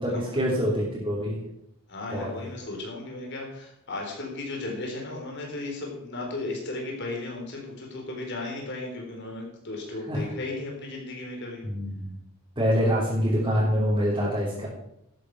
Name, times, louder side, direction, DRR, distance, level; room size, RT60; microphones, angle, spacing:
voice 1, 0.0-1.4 2.1-2.3 10.1-10.2 11.6-12.1 12.6-14.7, equal, 20° right, -9 dB, 3.5 m, -25 dB
voice 2, 1.9-11.6, left 2 dB, 55° left, 0 dB, 4.0 m, -35 dB
12.5 x 9.7 x 4.8 m, 0.79 s
head